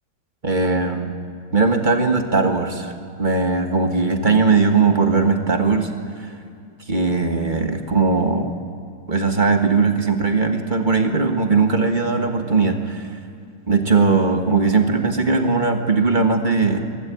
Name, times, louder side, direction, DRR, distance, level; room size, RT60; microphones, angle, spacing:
voice 1, 0.4-1.2 1.5-2.9 3.2-5.9 6.9-8.5 9.1-13.0 13.7-16.8, right 4 dB, 25° right, 5 dB, 1.4 m, -19 dB
23.0 x 13.0 x 8.9 m, 2.3 s
omnidirectional pair, 2.2 m